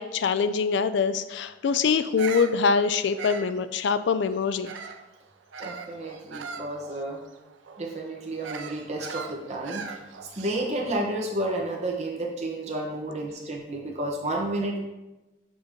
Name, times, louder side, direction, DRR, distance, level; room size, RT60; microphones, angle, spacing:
voice 1, 0.0-4.7, left 5 dB, 70° left, 12 dB, 0.4 m, -24 dB
Bird vocalization bird call bird song, 2.0-5.1 5.5-10.8, right 5 dB, 80° right, 0.5 m, -40 dB
voice 2, 5.6-7.2 7.8-10.0 10.3-14.8, right 1 dB, 35° right, -1 dB, 1.1 m, -31 dB
7.8 x 3.0 x 5.1 m, 1.0 s
head